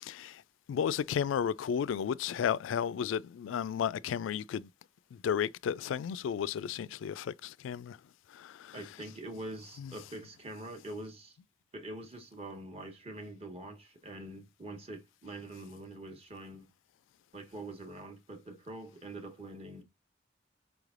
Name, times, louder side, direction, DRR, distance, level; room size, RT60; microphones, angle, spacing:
voice 1, 0.0-0.4 0.7-4.7 5.1-8.0 8.3-8.8 9.8-9.9, left 8 dB, 80° left, 0.3 m, -33 dB
voice 2, 8.7-11.4 11.7-16.7 17.3-19.8, right 1 dB, 35° right, 1.1 m, -44 dB
5.0 x 3.2 x 2.4 m
head